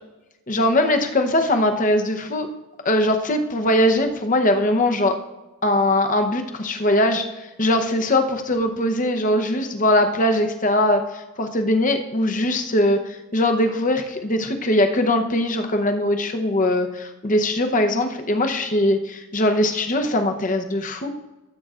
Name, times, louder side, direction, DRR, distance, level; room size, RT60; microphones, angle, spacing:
voice 1, 0.5-2.5 2.8-5.1 5.6-21.1, left 1 dB, 35° left, 6 dB, 0.8 m, -21 dB
14.5 x 7.7 x 2.5 m, 1.1 s
head